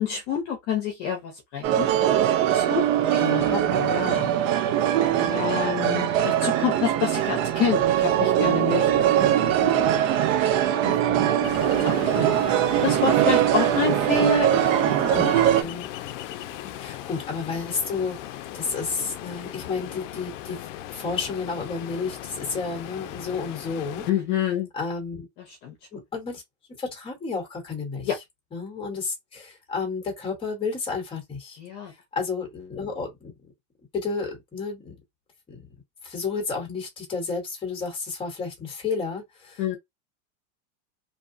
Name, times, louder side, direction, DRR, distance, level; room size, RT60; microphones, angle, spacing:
voice 1, 0.0-2.2 2.5-2.8 3.1-4.3 5.1-10.1 10.4-10.5 11.4-11.5 11.8-15.4 16.6-16.7 24.1-24.7 25.6-25.7 28.0-28.2 31.6-31.9 39.6-39.8, left 8 dB, 40° left, 0.8 m, -29 dB
sound 1, 1.6-15.6, right 11 dB, 70° right, 0.7 m, -22 dB
voice 2, 3.2-3.7 10.8-11.3 15.1-15.9 16.7-20.7 20.9-24.1 24.7-25.3 25.9-26.4 26.8-28.1 28.5-31.6 32.1-33.3 33.9-34.9 35.5-35.6 36.0-39.8, left 4 dB, 15° left, 1.2 m, -31 dB
Ocean, 11.4-24.1, left 13 dB, 65° left, 0.5 m, -38 dB
2.8 x 2.3 x 2.6 m
supercardioid pair, 165°, 40 cm